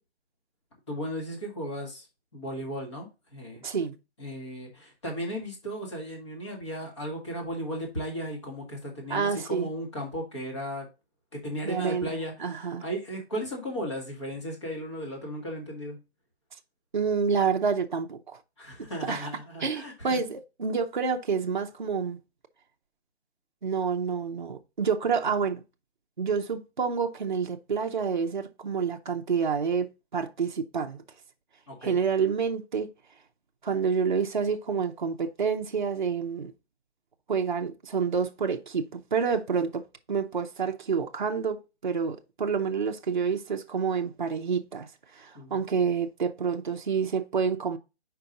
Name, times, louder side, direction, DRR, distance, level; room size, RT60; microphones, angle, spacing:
voice 1, 0.9-2.1 2.3-3.6 4.2-10.9 11.3-16.0 18.6-20.2 31.7-32.0 45.3-45.6, equal, 25° left, 1.6 m, -35 dB
voice 2, 3.6-3.9 9.1-9.7 11.6-12.1 12.4-12.8 16.9-18.4 19.1-19.3 19.6-22.2 23.6-25.6 26.2-29.9 30.1-31.0 31.8-32.9 33.6-36.5 37.3-39.8 40.1-44.9 45.2-47.8, right 6 dB, 45° right, 0.7 m, -28 dB
5.7 x 4.7 x 3.8 m
hypercardioid pair, 180°, 33 cm